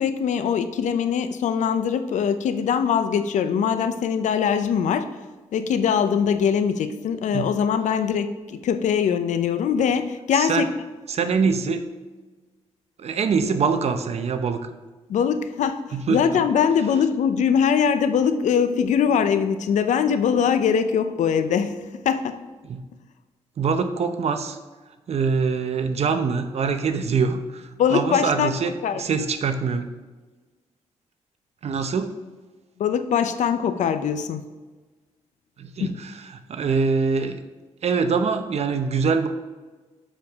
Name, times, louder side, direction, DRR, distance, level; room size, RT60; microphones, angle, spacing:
voice 1, 0.0-5.1 5.5-10.7 15.1-15.8 16.1-22.4 27.8-28.6 28.8-29.0 32.8-34.4 35.8-35.9, left 7 dB, 90° left, 10 dB, 0.6 m, -22 dB
voice 2, 10.3-10.7 11.1-11.8 13.0-14.7 15.9-16.4 22.6-22.8 23.6-24.6 25.1-29.9 31.6-32.2 35.6-37.4 37.8-39.3, right 5 dB, 60° right, 8 dB, 0.8 m, -24 dB
7.4 x 6.7 x 3.5 m, 1.3 s
cardioid pair, 100°, 12 cm